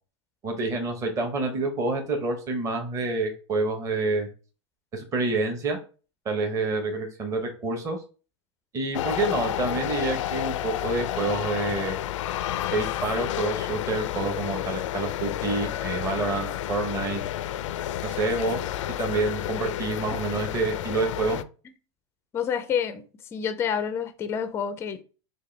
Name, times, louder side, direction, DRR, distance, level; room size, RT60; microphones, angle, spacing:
voice 1, 0.4-4.3 4.9-5.8 6.2-8.0 8.7-12.0 12.7-17.2 18.0-18.7 19.0-21.4, right 3 dB, 20° right, 3 dB, 0.9 m, -28 dB
sound 1, 8.9-21.4, left 12 dB, 80° left, 0.4 m, -30 dB
voice 2, 22.3-23.0 23.3-25.0, left 8 dB, 15° left, 10 dB, 0.4 m, -28 dB
6.5 x 2.3 x 3.3 m, 0.36 s
supercardioid pair, 150°, 16 cm